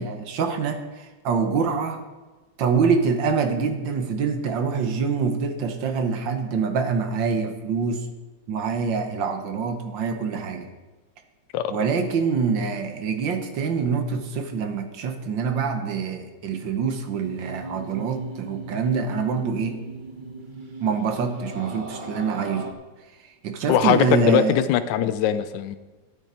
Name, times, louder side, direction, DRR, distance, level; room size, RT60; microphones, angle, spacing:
voice 1, 0.0-2.0 2.6-8.0 8.5-10.7 11.7-19.7 20.8-22.7 23.4-24.6, right 5 dB, 75° right, 6 dB, 1.6 m, -25 dB
sound 1, 17.1-22.7, right 3 dB, 40° right, 0.7 m, -38 dB
voice 2, 23.7-25.8, left 10 dB, 75° left, 11 dB, 1.2 m, -21 dB
12.0 x 8.8 x 4.3 m, 1.2 s
omnidirectional pair, 2.1 m